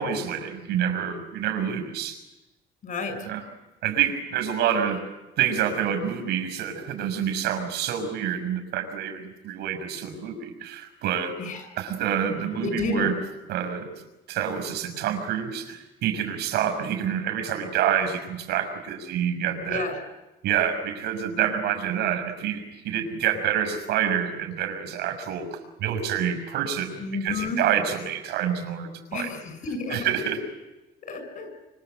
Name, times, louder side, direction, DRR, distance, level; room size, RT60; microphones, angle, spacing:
voice 1, 0.0-2.2 3.3-3.4 3.8-5.0 5.4-11.3 11.7-13.2 13.5-13.9 14.3-19.8 20.4-29.3 29.9-30.4, right 9 dB, 80° right, 7 dB, 6.1 m, -27 dB
voice 2, 2.8-3.3 11.4-11.7 12.6-13.1 19.6-19.9 27.0-27.6 29.1-30.1 31.1-31.5, left 4 dB, 50° left, 8 dB, 6.7 m, -31 dB
26.0 x 26.0 x 8.3 m, 1.0 s
cardioid pair, 110°, 17 cm